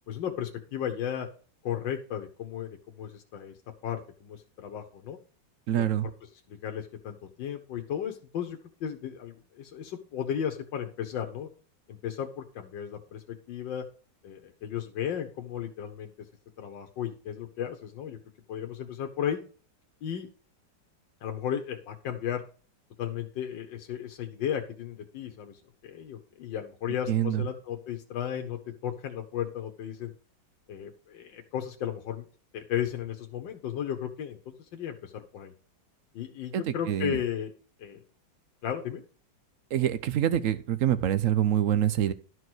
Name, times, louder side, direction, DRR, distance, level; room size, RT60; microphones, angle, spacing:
voice 1, 0.1-1.3 1.6-3.5 3.8-5.2 5.8-6.1 6.5-11.5 11.9-13.8 14.2-16.1 16.6-18.2 18.5-19.4 20.0-20.3 21.2-22.4 23.0-30.1 30.7-32.3 32.5-35.5 36.1-37.5 37.8-38.0 38.6-39.0, left 9 dB, 85° left, 4 dB, 1.7 m, -35 dB
voice 2, 5.7-6.1 27.1-27.4 36.5-37.2 39.7-42.1, right 11 dB, 70° right, 13 dB, 0.8 m, -26 dB
12.0 x 4.7 x 6.1 m, 0.40 s
omnidirectional pair, 2.0 m